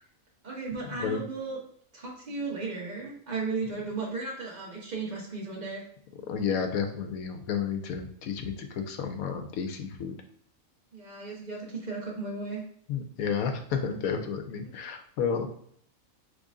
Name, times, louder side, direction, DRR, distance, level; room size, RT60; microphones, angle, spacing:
voice 1, 0.4-1.6 1.9-5.8 10.9-12.6, right 4 dB, 30° right, -3 dB, 1.3 m, -35 dB
voice 2, 6.3-10.2 12.9-15.5, left 6 dB, 85° left, 6 dB, 1.1 m, -31 dB
3.9 x 3.3 x 3.6 m, 0.63 s
omnidirectional pair, 1.5 m